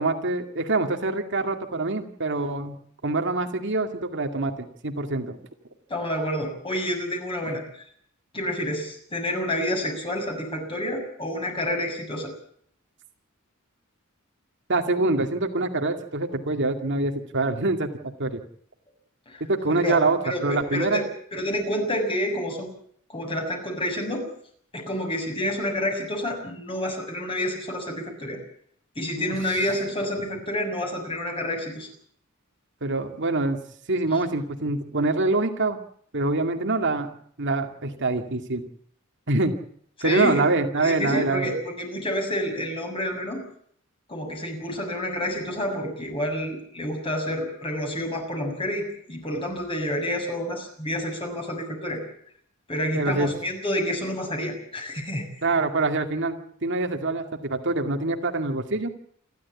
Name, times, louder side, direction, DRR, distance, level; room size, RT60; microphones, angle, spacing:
voice 1, 0.0-2.8 3.0-5.4 14.7-17.9 18.2-18.4 19.5-21.1 29.1-29.4 32.8-33.6 33.9-35.8 36.1-37.1 37.4-38.6 39.3-39.5 40.0-41.5 52.9-53.3 55.4-57.2 57.5-58.9, right 2 dB, 60° right, 5 dB, 2.2 m, -25 dB
voice 2, 5.9-7.6 8.3-12.3 19.3-19.4 19.7-20.0 20.2-21.0 21.3-22.7 23.1-24.2 24.7-28.4 29.0-31.9 40.0-40.4 40.8-43.4 44.1-52.0 52.7-55.3, left 1 dB, 25° left, 3 dB, 6.9 m, -29 dB
28.5 x 12.5 x 8.4 m, 0.62 s
head